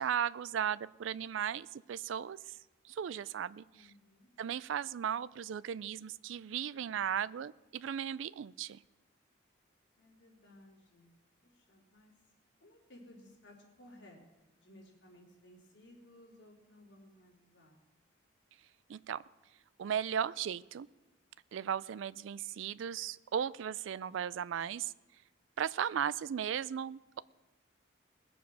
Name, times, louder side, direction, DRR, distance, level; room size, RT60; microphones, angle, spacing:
voice 1, 0.0-2.4 2.9-3.9 4.4-8.8 18.9-19.2 19.8-20.9 21.5-24.9 25.6-27.2, right 8 dB, 80° right, 19 dB, 0.3 m, -36 dB
voice 2, 3.7-4.3 10.0-11.1 11.5-12.1 12.6-17.8, left 1 dB, 65° left, -2 dB, 3.6 m, -58 dB
19.5 x 7.0 x 6.2 m, 1.1 s
head